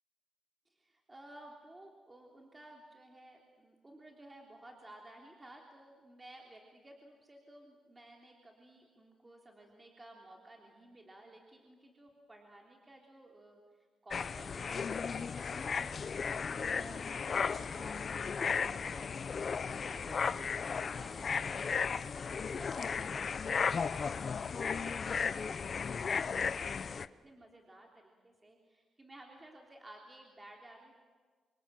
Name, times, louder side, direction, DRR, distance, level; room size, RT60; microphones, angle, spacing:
voice 1, 0.6-16.0 16.5-31.0, right 1 dB, 20° right, 0 dB, 3.4 m, -55 dB
sound 1, 14.1-27.1, left 6 dB, 40° left, 0.8 m, -35 dB
29.0 x 26.0 x 7.7 m, 1.5 s
cardioid pair, 125°, 0 cm